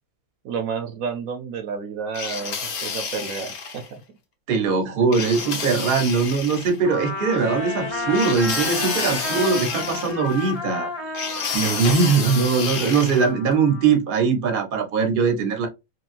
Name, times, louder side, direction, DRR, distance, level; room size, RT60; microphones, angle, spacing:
voice 1, 0.4-4.0, right 6 dB, 75° right, 1.0 m, -31 dB
sound 1, 2.1-3.9 5.1-6.8 8.1-10.5 11.1-13.3, left 5 dB, 50° left, 0.7 m, -30 dB
voice 2, 4.5-10.9 11.5-15.7, right 5 dB, 45° right, 0.8 m, -21 dB
sound 2, 6.8-11.2 11.6-11.9, left 4 dB, 70° left, 1.1 m, -37 dB
Trumpet, 6.8-13.9, left 2 dB, 20° left, 0.9 m, -32 dB
3.8 x 2.3 x 2.4 m
omnidirectional pair, 1.5 m